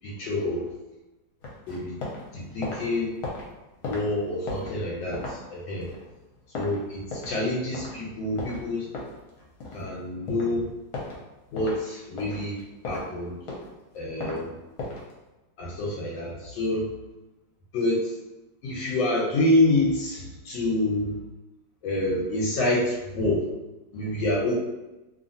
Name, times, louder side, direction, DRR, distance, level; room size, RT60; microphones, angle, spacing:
voice 1, 0.0-0.7 1.7-2.0 2.3-3.1 3.8-5.9 6.5-8.9 9.7-10.7 11.5-12.6 12.8-13.4 13.9-14.6 15.6-16.9 17.7-18.1 18.6-21.2 21.8-23.5 23.9-24.5, left 1 dB, 90° left, -5 dB, 1.4 m, -27 dB
sound 1, 1.4-2.3 2.5-7.5 7.7-8.0 8.4-9.9 10.3-10.5 10.9-11.2 11.6-11.8 12.2-13.1 13.4-14.4 14.8-15.1, left 2 dB, 65° left, 1.1 m, -36 dB
3.0 x 2.4 x 2.6 m, 1.0 s
omnidirectional pair, 2.0 m